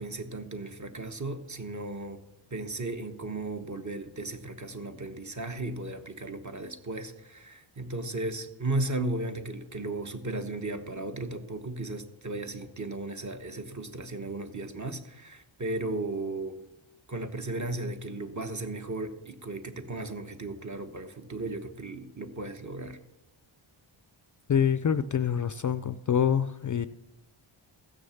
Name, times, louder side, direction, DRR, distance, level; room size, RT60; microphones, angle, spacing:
voice 1, 0.0-2.2 2.5-16.6 17.1-23.0, right 2 dB, 35° right, 7 dB, 1.2 m, -35 dB
voice 2, 24.5-26.9, left 8 dB, 40° left, 13 dB, 0.4 m, -26 dB
15.0 x 6.4 x 7.1 m, 0.96 s
wide cardioid pair, 95°, 50 cm